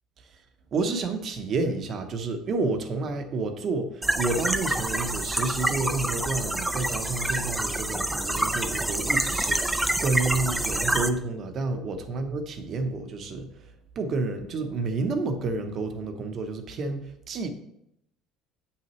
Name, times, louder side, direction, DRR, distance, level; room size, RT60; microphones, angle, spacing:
voice 1, 0.7-17.5, right 3 dB, 40° right, 7 dB, 0.8 m, -30 dB
sound 1, 4.0-11.1, right 1 dB, 5° right, 0.4 m, -27 dB
8.3 x 5.7 x 3.1 m, 0.76 s
cardioid pair, 150°, 0 cm